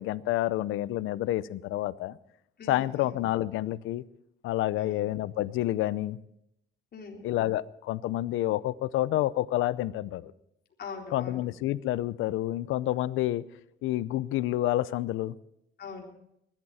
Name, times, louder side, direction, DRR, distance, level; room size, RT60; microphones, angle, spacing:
voice 1, 0.0-2.2 2.7-4.0 4.4-6.2 7.2-10.3 11.1-13.4 13.8-15.4, left 15 dB, 90° left, 19 dB, 0.6 m, -29 dB
voice 2, 2.6-3.2 4.8-5.1 6.9-7.3 10.8-11.4 15.8-16.0, left 5 dB, 55° left, 0 dB, 4.1 m, -42 dB
20.5 x 13.5 x 4.2 m, 0.78 s
cardioid pair, 90°, 20 cm